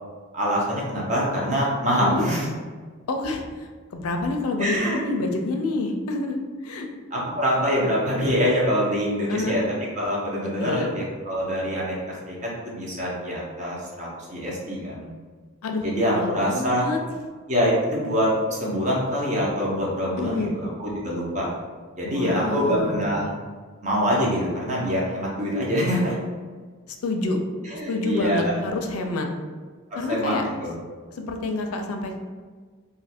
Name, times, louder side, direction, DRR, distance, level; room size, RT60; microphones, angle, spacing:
voice 1, 0.3-2.5 4.6-5.0 7.1-9.6 9.9-15.1 15.8-16.8 17.5-21.5 22.0-23.3 23.8-26.2 27.6-28.5 30.1-30.3 30.6-30.7, equal, 35° right, -4 dB, 0.8 m, -25 dB
voice 2, 3.1-6.9 9.3-9.6 10.6-10.9 15.6-15.8 16.1-17.0 20.2-20.5 22.0-23.1 26.9-27.4 27.9-29.3 30.0-30.5 31.2-32.2, left 2 dB, 90° left, 4 dB, 0.5 m, -28 dB
2.6 x 2.4 x 4.2 m, 1.5 s
head